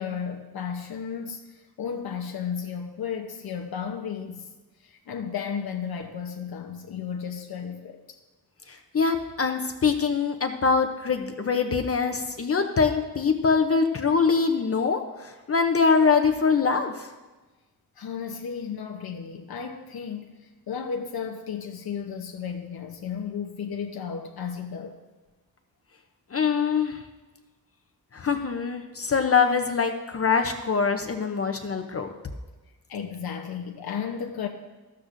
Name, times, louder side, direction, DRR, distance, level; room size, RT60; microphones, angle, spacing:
voice 1, 0.0-4.5 4.8-8.2 18.0-24.9 32.9-34.5, left 7 dB, 85° left, 3 dB, 0.9 m, -34 dB
voice 2, 8.7-17.1 26.3-27.0 28.1-32.1, left 5 dB, 40° left, 6 dB, 0.6 m, -24 dB
14.0 x 12.5 x 2.6 m, 1.2 s
wide cardioid pair, 155°, 36 cm